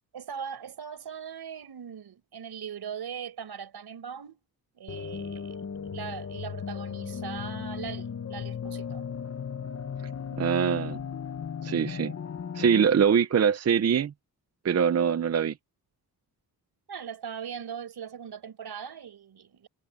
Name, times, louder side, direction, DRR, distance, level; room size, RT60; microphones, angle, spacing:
voice 1, 0.1-4.4 4.7-9.0 16.9-19.7, right 7 dB, 80° right, 5.1 m, -40 dB
sound 1, 4.9-12.9, left 7 dB, 40° left, 1.0 m, -36 dB
voice 2, 10.4-11.0 11.6-12.1 12.5-14.1 14.6-15.5, right 7 dB, 40° right, 0.6 m, -23 dB
wide cardioid pair, 150°, 38 cm